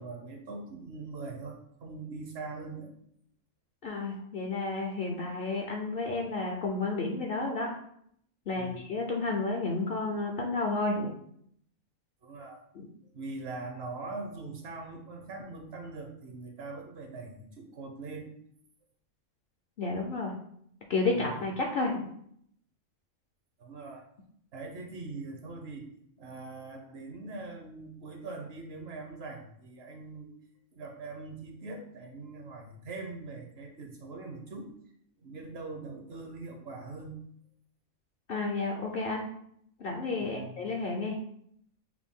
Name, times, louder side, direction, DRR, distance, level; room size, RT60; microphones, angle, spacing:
voice 1, 0.0-2.9 8.6-8.8 12.2-12.6 13.1-18.3 21.1-21.4 23.6-24.0 24.5-25.9 26.2-30.3 30.7-34.7 35.2-37.2 40.2-40.6, right 3 dB, 55° right, 3 dB, 0.8 m, -42 dB
voice 2, 3.8-7.7 8.5-11.1 12.8-12.9 19.8-20.4 20.9-22.1 38.3-39.3 39.8-41.2, left 3 dB, 60° left, 1 dB, 0.6 m, -31 dB
5.9 x 2.2 x 3.6 m, 0.69 s
omnidirectional pair, 1.4 m